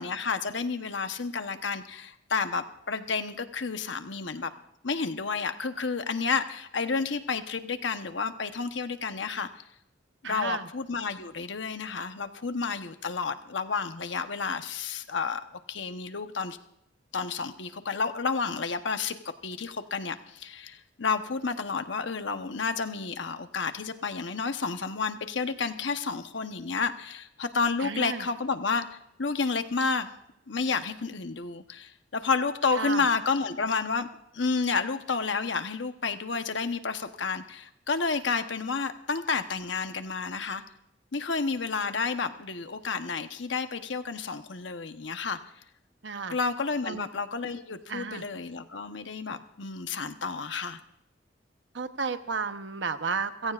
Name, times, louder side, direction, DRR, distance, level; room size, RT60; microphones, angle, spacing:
voice 1, 0.0-4.5 4.8-9.5 10.2-15.4 15.7-16.6 17.1-19.2 19.4-30.1 30.5-34.1 34.3-40.6 41.1-45.4 46.3-50.8, left 4 dB, 75° left, 8 dB, 1.0 m, -30 dB
voice 2, 10.2-10.7 27.8-28.3 32.7-33.1 46.0-46.4 46.8-47.1 47.9-48.2 51.7-53.5, right 5 dB, 70° right, 9 dB, 1.0 m, -32 dB
30.0 x 16.5 x 2.5 m, 0.80 s
head